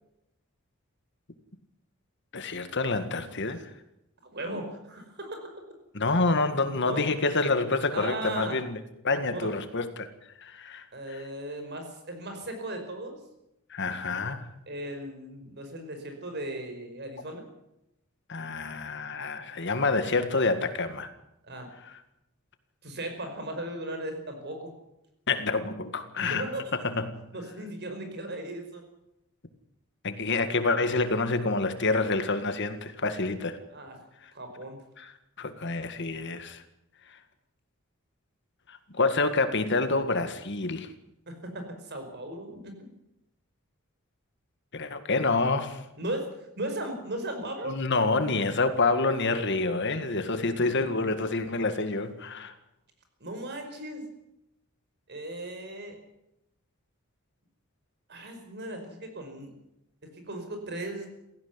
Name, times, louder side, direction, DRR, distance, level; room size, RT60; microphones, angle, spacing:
voice 1, 2.3-3.7 5.9-8.8 9.0-10.1 10.4-11.2 13.7-14.5 18.3-21.1 25.3-26.4 26.8-27.2 30.0-33.6 34.2-34.3 35.0-35.1 35.4-36.6 38.7-40.9 44.7-45.8 47.7-52.5, left 3 dB, 55° left, 9 dB, 1.9 m, -27 dB
voice 2, 4.3-5.5 6.8-7.0 7.9-8.6 9.3-9.5 10.9-13.2 14.7-17.4 21.5-21.7 22.8-24.7 26.2-26.7 27.3-28.8 33.7-34.0 34.3-34.8 41.3-42.9 46.0-47.8 53.2-54.0 55.1-56.0 58.1-59.5 60.0-61.1, right 1 dB, 50° right, 6 dB, 5.2 m, -37 dB
17.0 x 16.0 x 9.7 m, 0.85 s
head